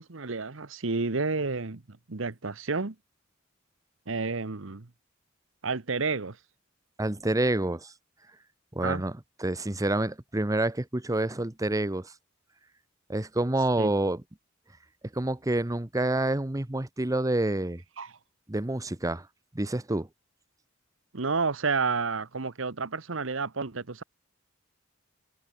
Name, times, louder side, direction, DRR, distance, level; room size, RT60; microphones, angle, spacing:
voice 1, 0.0-2.9 4.1-4.9 5.6-6.4 8.8-9.0 13.8-13.9 18.0-18.1 21.1-24.0, right 4 dB, 70° right, 1.1 m, -30 dB
voice 2, 7.0-7.9 8.7-9.1 9.4-12.1 13.1-14.2 15.1-17.8 18.5-19.3 19.5-20.1, right 1 dB, 15° right, 0.9 m, -28 dB
head